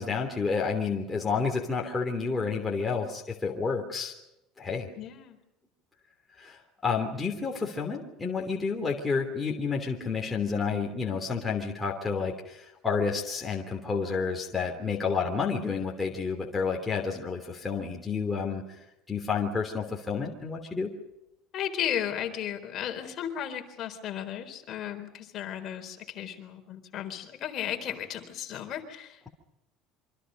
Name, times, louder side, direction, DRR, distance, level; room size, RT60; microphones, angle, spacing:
voice 1, 0.0-4.1 4.6-4.9 6.4-18.8 19.1-20.9, left 5 dB, 10° left, -1 dB, 3.1 m, -30 dB
voice 2, 5.0-5.4 21.5-29.3, left 10 dB, 40° left, 5 dB, 4.0 m, -35 dB
27.5 x 25.5 x 5.4 m, 0.88 s
cardioid pair, 160°, 0 cm